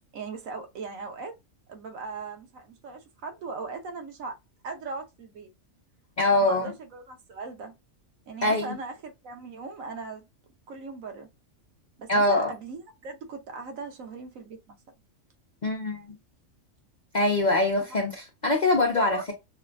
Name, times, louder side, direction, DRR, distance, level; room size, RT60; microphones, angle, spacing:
voice 1, 0.1-1.3 1.7-4.3 4.6-5.5 6.3-7.7 8.3-10.2 10.7-11.3 12.0-14.8 19.0-19.3, right 4 dB, 85° right, 1.3 m, -39 dB
voice 2, 6.2-6.7 8.4-8.8 12.1-12.5 15.6-16.2 17.1-19.2, left 2 dB, 40° left, 0.7 m, -23 dB
5.9 x 2.3 x 2.3 m
omnidirectional pair, 1.4 m